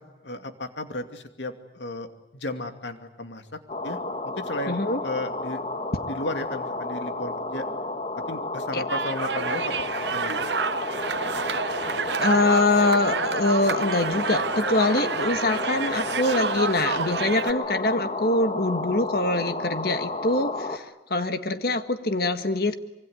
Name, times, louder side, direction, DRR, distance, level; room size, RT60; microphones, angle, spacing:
voice 1, 0.2-2.1 2.3-3.4 3.8-4.0 4.2-5.6 6.1-7.6 8.3-10.3, left 1 dB, 90° left, 7 dB, 2.6 m, -34 dB
sound 1, 3.7-20.8, left 2 dB, 35° left, 1.6 m, -32 dB
voice 2, 4.7-5.0 8.7-8.8 12.2-20.8 21.1-22.8, left 2 dB, 55° left, 9 dB, 1.6 m, -24 dB
sound 2, 8.9-17.5, right 5 dB, 80° right, 1.0 m, -29 dB
25.5 x 24.0 x 9.7 m, 0.89 s
head